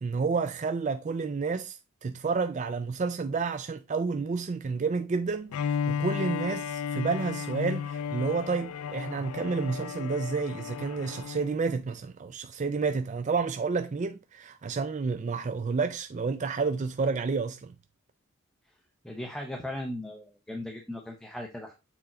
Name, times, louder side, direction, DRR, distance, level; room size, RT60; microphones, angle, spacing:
voice 1, 0.0-17.7, right 4 dB, 35° right, 0.3 m, -30 dB
Bowed string instrument, 5.5-11.5, left 7 dB, 90° left, 0.4 m, -34 dB
voice 2, 19.0-21.7, left 1 dB, 5° left, 0.7 m, -37 dB
6.8 x 4.4 x 3.8 m
head